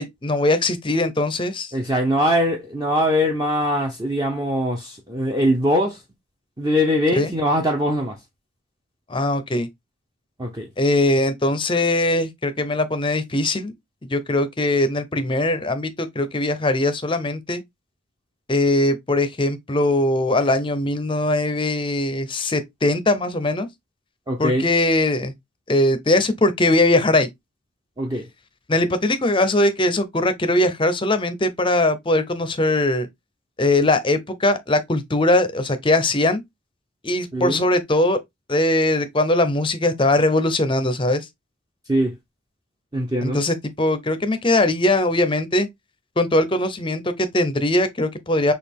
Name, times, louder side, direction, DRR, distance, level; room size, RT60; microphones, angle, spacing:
voice 1, 0.0-1.7 7.1-7.3 9.1-9.7 10.8-13.7 14.1-17.6 18.5-23.7 24.4-25.3 25.7-27.3 28.7-33.1 33.6-36.4 37.0-38.2 38.5-41.3 43.2-45.7 46.2-48.5, left 1 dB, 25° left, 0.6 m, -20 dB
voice 2, 1.7-6.0 6.6-8.2 10.4-10.7 24.3-24.7 28.0-28.3 37.3-37.6 41.9-42.1 42.9-43.4, equal, 15° right, 0.6 m, -22 dB
6.2 x 2.4 x 3.5 m
head